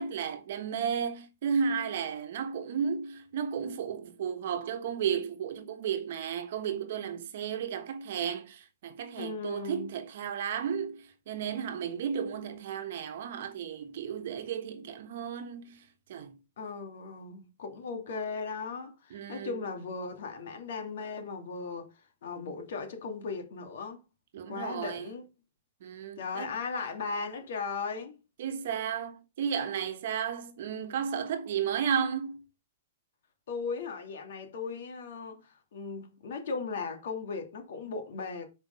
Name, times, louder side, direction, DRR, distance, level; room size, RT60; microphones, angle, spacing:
voice 1, 0.0-15.8 16.1-16.4 19.1-19.6 24.3-25.0 25.8-26.5 28.4-32.4, right 7 dB, 50° right, 1.3 m, -33 dB
voice 2, 9.2-9.9 16.6-21.9 22.2-24.0 24.5-25.3 26.2-28.2 33.5-38.4, left 4 dB, 60° left, 2.7 m, -37 dB
8.0 x 5.2 x 5.5 m
hypercardioid pair, 170°, 0 cm